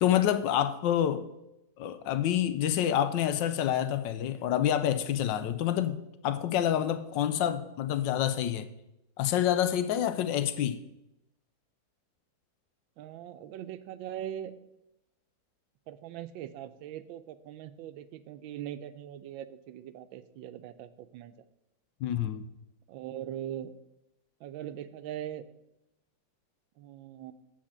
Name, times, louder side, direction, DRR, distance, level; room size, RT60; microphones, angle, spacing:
voice 1, 0.0-1.3 1.8-6.0 6.2-8.7 9.2-10.8 22.0-22.5, left 10 dB, 75° left, 1.3 m, -27 dB
voice 2, 13.0-14.5 15.9-21.3 22.9-23.7 24.4-25.5 26.8-27.3, right 11 dB, 85° right, 1.3 m, -41 dB
7.5 x 4.9 x 7.2 m
omnidirectional pair, 2.1 m